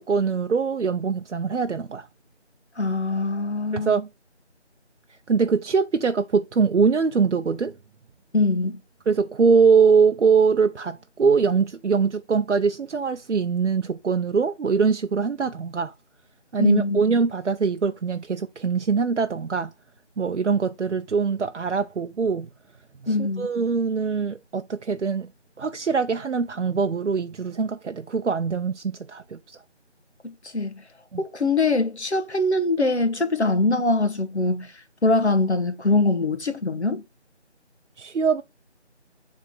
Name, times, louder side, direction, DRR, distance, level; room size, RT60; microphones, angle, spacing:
voice 1, 0.0-2.1 3.7-4.1 5.1-7.7 9.1-15.9 16.5-19.7 20.2-22.5 23.0-25.3 25.6-29.6 31.1-31.2 38.0-38.4, right 5 dB, 75° right, 0.5 m, -23 dB
voice 2, 2.8-3.9 8.3-8.8 16.6-17.0 23.1-23.5 30.2-30.7 31.2-37.0, left 2 dB, 65° left, 1.2 m, -23 dB
7.5 x 3.4 x 3.9 m
figure-of-eight pair, 170°, 36 cm